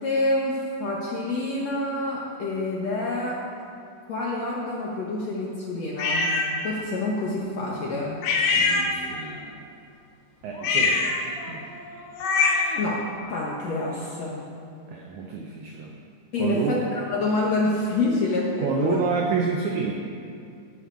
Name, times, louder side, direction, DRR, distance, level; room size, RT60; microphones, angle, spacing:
voice 1, 0.0-3.5 4.1-8.2 12.8-14.5 16.3-19.0, left 2 dB, 65° left, -4 dB, 1.7 m, -27 dB
sound 1, 6.0-6.5 8.2-9.3 10.6-12.8, left 4 dB, 85° left, 3.2 m, -24 dB
voice 2, 8.5-9.6 10.4-11.1 11.5-11.8 14.9-15.9 16.4-16.8 18.6-19.9, right 4 dB, 85° right, 1 dB, 1.7 m, -28 dB
10.5 x 7.6 x 8.3 m, 2.4 s
omnidirectional pair, 4.6 m